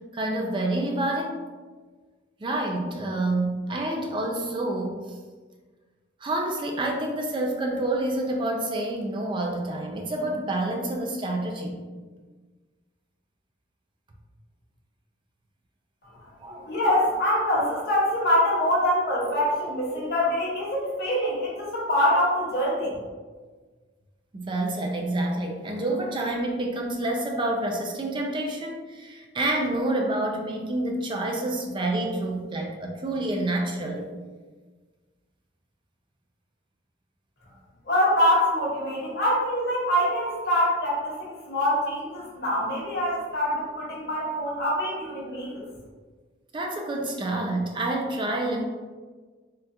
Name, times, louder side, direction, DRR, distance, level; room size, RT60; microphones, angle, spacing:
voice 1, 0.1-1.4 2.4-5.0 6.2-11.8 16.4-16.7 24.3-34.1 46.5-48.7, right 1 dB, 25° right, 1 dB, 0.3 m, -28 dB
voice 2, 16.5-23.0 37.8-45.6, equal, 55° left, -4 dB, 1.0 m, -24 dB
3.6 x 2.2 x 2.7 m, 1.4 s
head